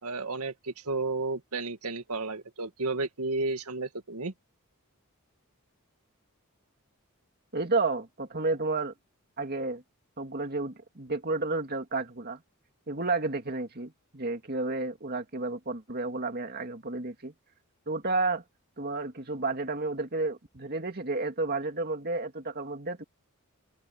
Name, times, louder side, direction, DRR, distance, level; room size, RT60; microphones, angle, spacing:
voice 1, 0.0-4.3, right 3 dB, 85° right, 1.9 m, -32 dB
voice 2, 7.5-8.9 9.4-9.8 10.2-12.4 12.9-17.3 17.9-18.4 18.8-23.0, right 3 dB, 45° right, 2.6 m, -31 dB
open air
head